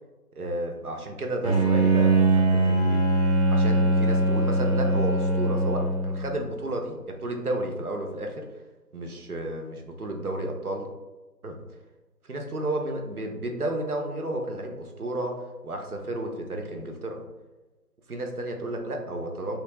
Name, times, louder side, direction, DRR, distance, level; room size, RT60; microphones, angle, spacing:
voice 1, 0.4-3.0 3.5-8.5 8.9-10.8 11.4-11.6 12.2-17.2 18.1-19.6, right 1 dB, 60° right, 3 dB, 0.7 m, -32 dB
Bowed string instrument, 1.4-6.4, right 2 dB, 40° left, 0.8 m, -22 dB
3.4 x 3.2 x 3.0 m, 1.1 s
figure-of-eight pair, 175°, 49 cm